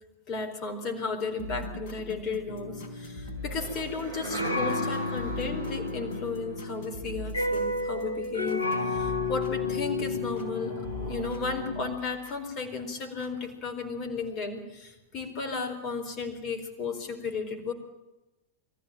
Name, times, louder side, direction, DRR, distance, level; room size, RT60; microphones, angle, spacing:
voice 1, 0.3-17.7, left 4 dB, 35° left, 4 dB, 4.3 m, -34 dB
sound 1, 1.4-10.5 10.8-12.4 13.2-13.3, left 1 dB, 50° left, 4.2 m, -42 dB
sound 2, 2.5-12.0, left 3 dB, 85° left, 1.4 m, -32 dB
sound 3, 3.4-7.0 8.3-13.0, right 2 dB, 65° right, 6.2 m, -44 dB
23.5 x 14.5 x 9.1 m, 1.0 s
figure-of-eight pair, 90°, 0 cm